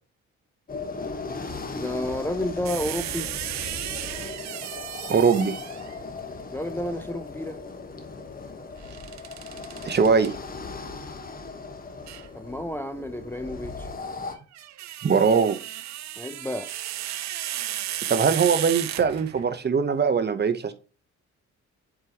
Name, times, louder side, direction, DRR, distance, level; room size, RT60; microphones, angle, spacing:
sound 1, 0.7-14.4, left 4 dB, 30° left, 1.3 m, -37 dB
voice 1, 1.7-3.3 6.5-7.6 12.3-13.9 16.2-16.7, left 1 dB, 5° left, 0.6 m, -31 dB
sound 2, 2.7-6.0 8.8-10.3 12.1-12.3 14.4-19.5, right 13 dB, 65° right, 0.6 m, -34 dB
voice 2, 5.1-5.5 9.8-10.3 15.0-15.6 18.1-20.7, right 5 dB, 35° right, 0.9 m, -21 dB
7.5 x 4.7 x 2.9 m
cardioid pair, 90°, 30 cm